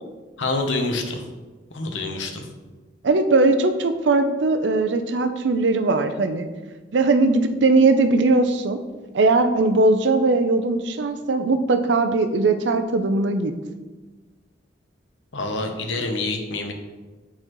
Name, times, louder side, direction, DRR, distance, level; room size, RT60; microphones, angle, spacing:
voice 1, 0.4-1.2 1.7-2.5 15.3-16.7, left 2 dB, 85° left, 4 dB, 0.9 m, -26 dB
voice 2, 3.0-6.5 6.9-8.8 9.1-13.5, right 3 dB, 70° right, 8 dB, 0.5 m, -19 dB
8.8 x 4.2 x 3.1 m, 1.3 s
head